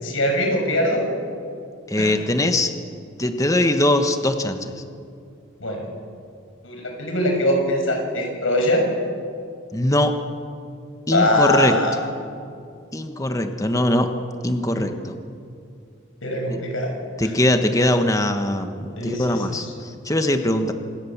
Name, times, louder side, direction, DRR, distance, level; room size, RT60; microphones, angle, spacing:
voice 1, 0.0-1.0 2.0-2.1 5.6-5.9 6.6-8.8 11.1-12.0 14.7-14.9 16.2-16.9 19.0-19.2, left 1 dB, 80° left, 2 dB, 6.3 m, -22 dB
voice 2, 1.9-2.7 3.2-4.7 9.7-10.1 11.1-11.8 12.9-14.1 14.4-15.2 16.5-16.6 17.2-20.7, left 1 dB, 15° left, 7 dB, 1.3 m, -21 dB
27.0 x 21.0 x 7.3 m, 2.4 s
head